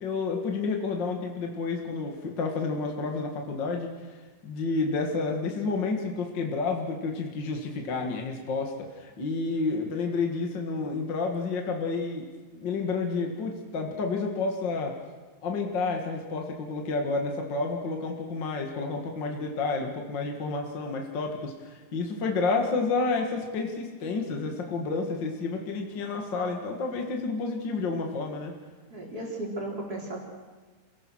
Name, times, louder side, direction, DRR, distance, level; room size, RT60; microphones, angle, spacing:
voice 1, 0.0-4.0 4.4-12.3 12.5-14.9 15.4-28.6, left 4 dB, 45° left, 2 dB, 1.4 m, -30 dB
voice 2, 28.9-30.2, right 1 dB, 25° right, -1 dB, 3.8 m, -35 dB
28.0 x 17.0 x 6.4 m, 1.3 s
omnidirectional pair, 5.0 m